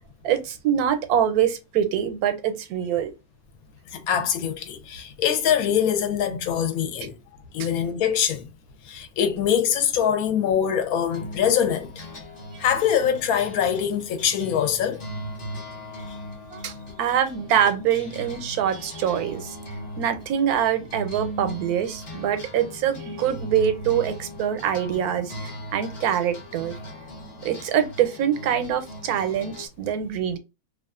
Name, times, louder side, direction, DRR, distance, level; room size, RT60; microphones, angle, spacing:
voice 1, 0.2-3.1 7.6-7.7 16.5-19.6 20.0-26.8 27.4-30.4, right 9 dB, 85° right, 1.1 m, -24 dB
voice 2, 3.9-7.1 7.5-8.5 8.8-12.1 12.6-15.0, left 8 dB, 80° left, 1.0 m, -23 dB
sound 1, 11.1-29.7, equal, 40° left, 1.1 m, -39 dB
2.5 x 2.4 x 2.3 m
omnidirectional pair, 1.5 m